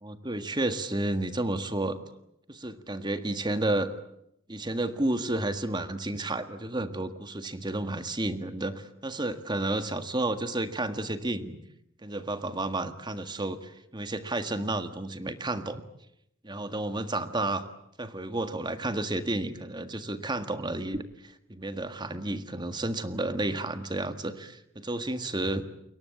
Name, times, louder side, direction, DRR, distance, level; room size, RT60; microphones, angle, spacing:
voice 1, 0.0-2.0 2.5-3.9 4.5-11.6 12.0-15.8 16.5-17.6 18.0-25.7, right 2 dB, 20° right, 10 dB, 1.7 m, -31 dB
29.0 x 22.5 x 8.4 m, 0.77 s
head